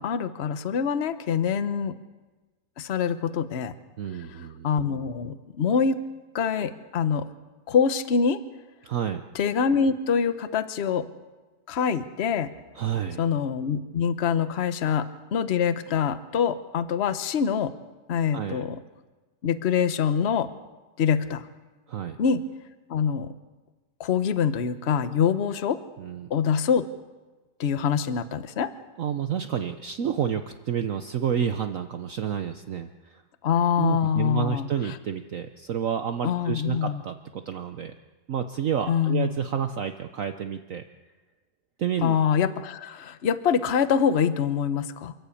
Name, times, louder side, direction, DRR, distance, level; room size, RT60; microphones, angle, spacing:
voice 1, 0.0-1.9 2.8-3.7 4.6-6.0 6.3-7.3 7.7-8.4 9.3-11.1 11.7-12.5 13.2-17.7 18.1-18.8 19.4-20.5 21.0-21.5 22.2-22.4 22.9-23.3 24.0-25.8 26.3-26.9 27.6-28.7 33.4-35.0 36.2-37.0 38.9-39.4 42.0-45.1, left 7 dB, 45° left, 11 dB, 1.0 m, -25 dB
voice 2, 4.0-4.7 8.8-9.2 12.8-13.2 18.3-18.6 21.9-22.2 26.0-26.3 29.0-33.2 33.8-38.0 38.3-40.8 41.8-42.2, right 8 dB, 55° right, 7 dB, 1.0 m, -30 dB
28.0 x 11.5 x 8.5 m, 1.2 s
omnidirectional pair, 1.9 m